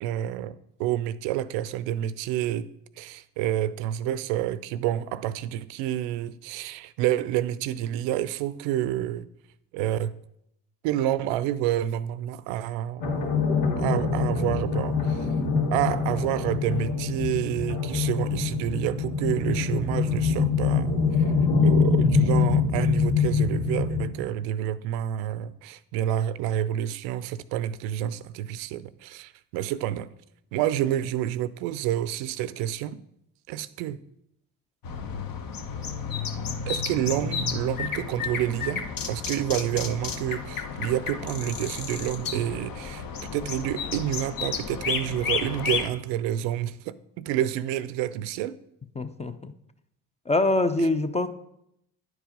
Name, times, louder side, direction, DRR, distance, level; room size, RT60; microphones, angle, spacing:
voice 1, 0.0-2.7 3.0-9.3 9.7-10.1 10.8-13.1 13.8-15.3 15.7-21.3 21.6-30.1 30.5-33.0 33.5-34.0 36.7-43.0 43.3-48.6, right 12 dB, 75° right, 0.5 m, -29 dB
sound 1, 13.0-24.1, left 5 dB, 75° left, 1.4 m, -24 dB
sound 2, 34.8-45.9, left 6 dB, 50° left, 1.0 m, -32 dB
voice 2, 49.0-49.5 50.3-51.3, left 2 dB, 15° left, 0.6 m, -24 dB
9.8 x 4.7 x 5.1 m
hypercardioid pair, 60°, 45 cm